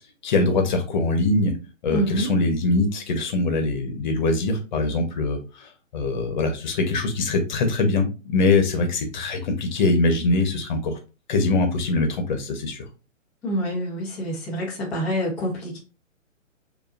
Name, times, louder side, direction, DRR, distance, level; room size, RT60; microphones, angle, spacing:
voice 1, 0.2-1.5 1.8-10.9 11.3-12.8, left 3 dB, 35° left, 5 dB, 1.1 m, -23 dB
voice 2, 1.9-2.3 13.4-15.8, equal, 5° left, -9 dB, 0.7 m, -27 dB
6.6 x 2.8 x 2.5 m, 0.31 s
figure-of-eight pair, 135°, 40 cm